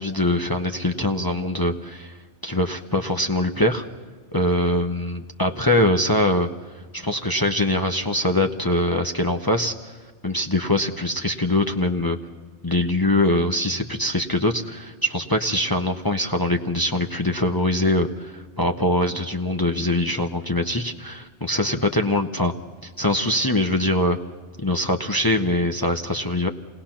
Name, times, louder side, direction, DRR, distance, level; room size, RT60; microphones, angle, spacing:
voice 1, 0.0-2.2 2.4-3.8 4.3-6.5 6.9-9.9 10.2-12.2 12.6-22.5 22.8-24.2 24.6-26.5, left 1 dB, 20° left, 4 dB, 0.8 m, -23 dB
28.0 x 20.0 x 5.9 m, 1.5 s
omnidirectional pair, 1.3 m